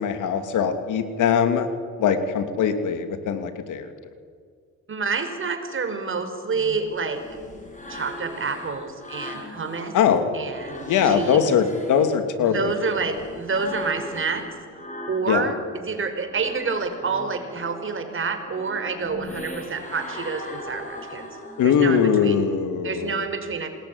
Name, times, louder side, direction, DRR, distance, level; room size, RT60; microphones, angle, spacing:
voice 1, 0.0-1.7 2.0-3.9 9.9-10.3 10.9-12.7 15.3-15.5 21.6-23.2, left 7 dB, 80° left, 8 dB, 2.9 m, -21 dB
voice 2, 4.9-7.2 7.9-9.9 10.3-11.5 12.5-14.4 15.1-15.6 15.8-21.3 21.6-22.4 22.8-23.7, right 4 dB, 45° right, 7 dB, 4.9 m, -28 dB
sound 1, 6.5-10.0 10.3-15.7 16.1-22.0, left 1 dB, 25° left, 7.3 m, -39 dB
28.0 x 20.5 x 9.9 m, 2.1 s
cardioid pair, 90°, 30 cm